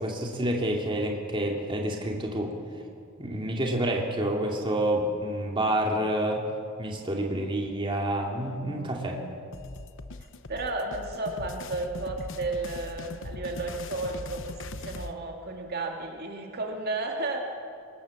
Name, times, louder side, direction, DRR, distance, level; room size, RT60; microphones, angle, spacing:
voice 1, 0.0-2.5 3.2-6.5 6.8-9.2, right 1 dB, 25° right, 0 dB, 2.5 m, -28 dB
sound 1, 9.5-15.1, left 2 dB, 60° left, 0.9 m, -40 dB
voice 2, 10.5-17.5, right 2 dB, 45° right, 1 dB, 2.4 m, -33 dB
24.5 x 20.0 x 7.2 m, 2.4 s
head